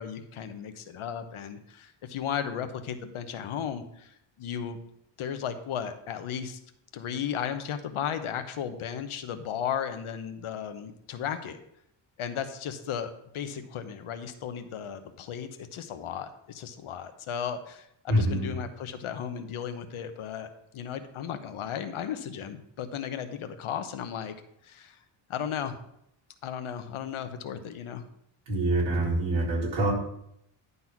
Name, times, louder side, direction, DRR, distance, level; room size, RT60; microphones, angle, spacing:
voice 1, 0.0-4.8 5.2-6.6 6.9-11.6 12.2-20.5 20.7-24.3 24.6-25.0 25.3-25.8 26.4-28.0, left 8 dB, 85° left, 8 dB, 1.0 m, -35 dB
voice 2, 18.1-18.5 28.5-29.9, right 1 dB, 65° right, -5 dB, 4.1 m, -25 dB
11.0 x 4.1 x 5.9 m, 0.75 s
wide cardioid pair, 160°, 49 cm